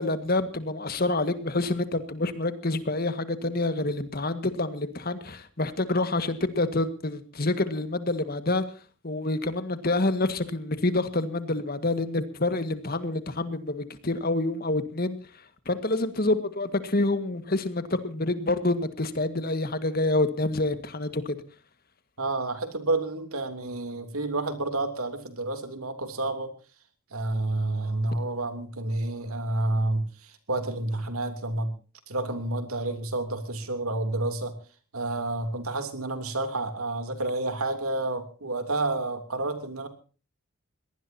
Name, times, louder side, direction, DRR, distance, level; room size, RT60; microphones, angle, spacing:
voice 1, 0.0-8.6 9.0-15.2 15.7-21.4, left 2 dB, 45° left, 11 dB, 1.7 m, -27 dB
voice 2, 22.2-26.5 27.1-31.7 32.1-34.5 34.9-39.9, right 2 dB, 85° right, 8 dB, 3.0 m, -29 dB
22.5 x 18.5 x 2.8 m, 0.37 s
head